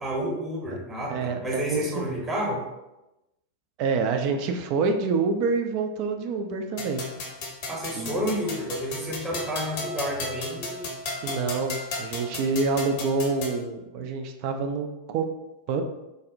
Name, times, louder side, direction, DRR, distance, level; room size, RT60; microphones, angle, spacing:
voice 1, 0.0-2.6 7.7-10.9, equal, 15° right, -1 dB, 0.8 m, -30 dB
voice 2, 1.1-2.2 3.8-7.1 8.0-8.1 11.2-15.3 15.7-15.8, right 4 dB, 45° right, 6 dB, 0.3 m, -27 dB
sound 1, 6.8-13.6, left 2 dB, 50° left, 0.7 m, -35 dB
4.0 x 2.1 x 2.6 m, 0.96 s
figure-of-eight pair, 90°, 0 cm